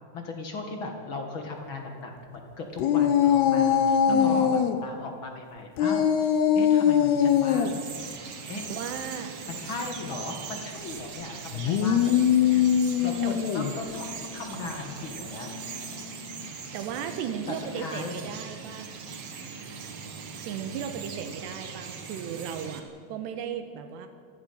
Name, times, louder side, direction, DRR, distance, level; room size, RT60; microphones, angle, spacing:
voice 1, 0.1-6.3 6.5-7.7 8.5-8.7 9.5-12.7 13.0-15.8 17.5-18.1, left 3 dB, 40° left, 3 dB, 2.0 m, -37 dB
sound 1, 2.8-4.8 5.8-7.7 11.5-13.8, left 8 dB, 75° left, 3.1 m, -22 dB
voice 2, 4.1-4.6 8.7-9.4 12.5-12.8 13.2-13.3 16.7-18.9 20.5-24.1, right 8 dB, 90° right, 7 dB, 3.3 m, -36 dB
Bird vocalization bird call bird song, 6.7-22.8, right 5 dB, 50° right, 1.9 m, -40 dB
27.0 x 16.5 x 5.7 m, 2.2 s
omnidirectional pair, 4.8 m